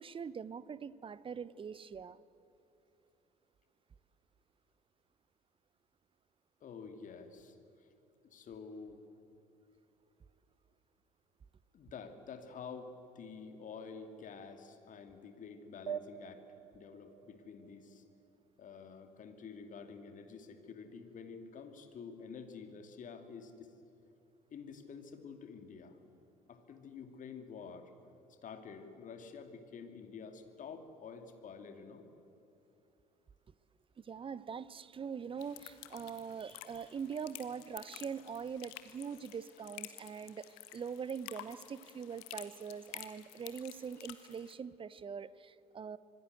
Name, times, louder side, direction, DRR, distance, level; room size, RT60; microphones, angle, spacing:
voice 1, 0.0-2.2 34.0-46.0, right 6 dB, 25° right, 18 dB, 0.9 m, -43 dB
voice 2, 6.6-7.9 8.2-9.0 11.7-16.5 16.7-18.0 18.6-23.8 24.5-26.0 26.5-27.9 28.4-32.1, left 5 dB, 40° left, 7 dB, 2.7 m, -49 dB
sound 1, 15.9-18.8, right 8 dB, 80° right, 0.5 m, -46 dB
sound 2, 35.4-44.5, left 15 dB, 60° left, 1.5 m, -51 dB
26.0 x 20.0 x 8.0 m, 3.0 s
figure-of-eight pair, 55°, 20 cm